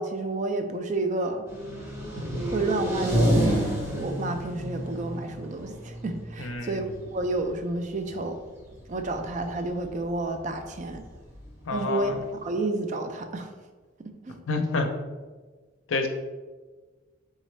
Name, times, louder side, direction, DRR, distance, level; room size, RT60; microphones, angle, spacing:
voice 1, 0.0-1.4 2.5-8.4 8.9-11.0 11.7-12.1 12.4-13.5 14.3-14.4, right 2 dB, 40° right, 7 dB, 0.4 m, -30 dB
sound 1, 1.5-12.5, equal, 15° right, 0.7 m, -30 dB
voice 2, 6.4-6.8 11.7-12.2 14.5-14.9 15.9-16.1, left 3 dB, 70° left, 4 dB, 0.5 m, -28 dB
4.2 x 3.6 x 3.1 m, 1.4 s
head